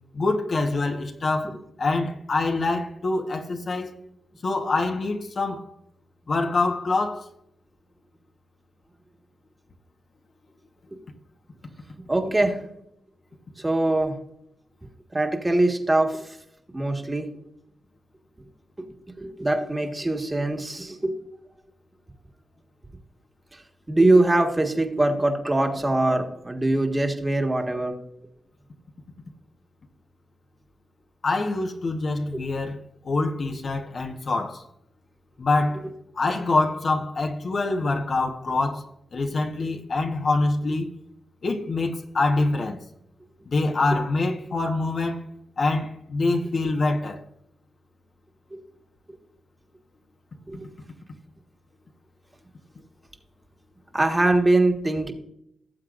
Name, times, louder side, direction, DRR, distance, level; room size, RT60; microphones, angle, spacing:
voice 1, 0.1-4.0 4.4-5.7 6.3-7.3 31.2-32.8 33.0-34.7 35.4-35.9 36.1-40.9 41.4-42.8 43.5-45.3 45.6-47.3, left 3 dB, 55° left, 1.1 m, -25 dB
voice 2, 12.1-12.6 13.6-14.2 15.1-16.3 16.7-17.3 19.2-21.1 23.5-23.6 23.9-28.0 48.5-48.6 50.5-50.7 53.9-55.1, right 2 dB, 20° right, 1.6 m, -22 dB
18.0 x 7.7 x 2.5 m
cardioid pair, 75°, 0 cm